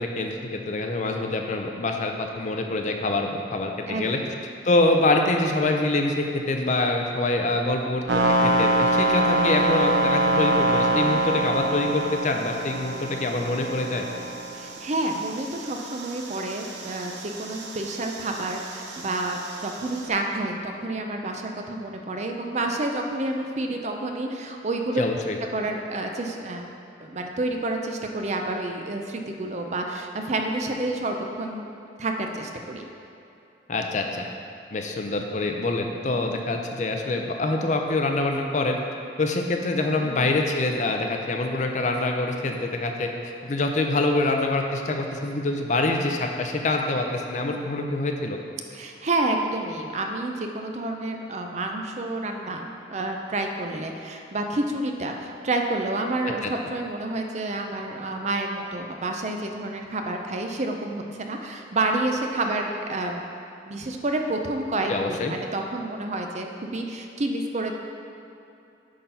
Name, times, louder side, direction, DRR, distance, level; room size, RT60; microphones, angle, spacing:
voice 1, 0.0-4.2 4.6-14.1 25.0-25.4 33.7-34.3 34.7-38.8 39.2-48.4 56.4-56.5 64.9-65.3, left 2 dB, 40° left, 3 dB, 0.5 m, -25 dB
sound 1, 8.1-20.1, right 2 dB, 75° right, 0.8 m, -26 dB
voice 2, 14.5-25.0 25.5-26.7 27.0-31.7 32.0-32.8 40.0-40.3 48.7-63.2 63.6-67.7, right 2 dB, 40° right, 3 dB, 0.5 m, -29 dB
8.6 x 3.9 x 5.5 m, 2.8 s
head